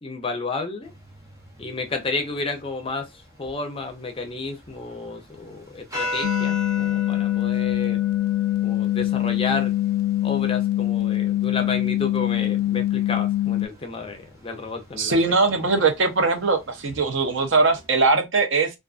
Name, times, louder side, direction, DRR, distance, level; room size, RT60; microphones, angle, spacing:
voice 1, 0.0-0.9 1.6-3.1 3.4-8.0 8.6-9.7 10.2-15.4, left 3 dB, 25° left, 0.5 m, -31 dB
sound 1, 0.8-17.9, left 2 dB, 15° right, 0.7 m, -40 dB
sound 2, 6.2-13.7, left 14 dB, 80° left, 0.4 m, -23 dB
voice 2, 15.0-18.7, right 3 dB, 55° right, 0.6 m, -21 dB
2.4 x 2.4 x 2.4 m
head